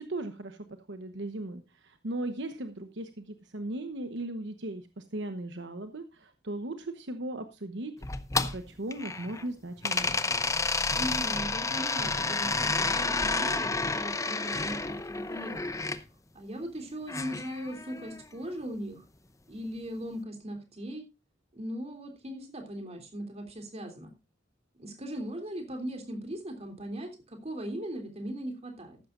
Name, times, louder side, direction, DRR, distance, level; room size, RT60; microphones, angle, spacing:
voice 1, 0.0-7.9 8.3-10.2, right 1 dB, 70° right, 8 dB, 1.1 m, -37 dB
sound 1, 8.0-9.4 9.8-16.0 17.1-18.2, left 3 dB, 15° left, 0.7 m, -30 dB
voice 2, 11.0-15.9 16.3-19.0 19.5-21.0 21.5-24.1 24.8-29.0, equal, 35° right, 4 dB, 3.3 m, -39 dB
14.5 x 12.0 x 2.5 m, 0.26 s
head